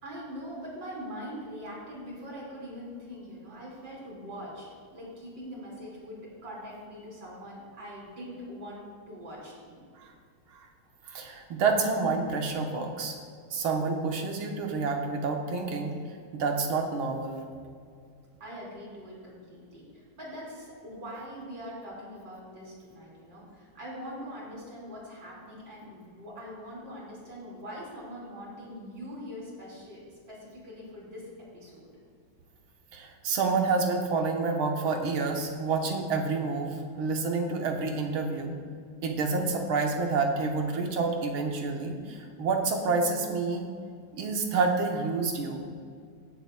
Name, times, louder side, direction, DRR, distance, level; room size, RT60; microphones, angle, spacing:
voice 1, 0.0-4.7 4.9-9.8 18.4-30.0 30.3-31.3 31.5-31.9, equal, 60° right, -5 dB, 3.5 m, -42 dB
voice 2, 11.1-13.2 13.5-16.0 16.3-17.4 32.9-38.5 39.0-43.7 44.1-45.7, right 4 dB, 80° right, 2 dB, 1.9 m, -28 dB
19.5 x 6.8 x 2.2 m, 2.2 s
omnidirectional pair, 2.2 m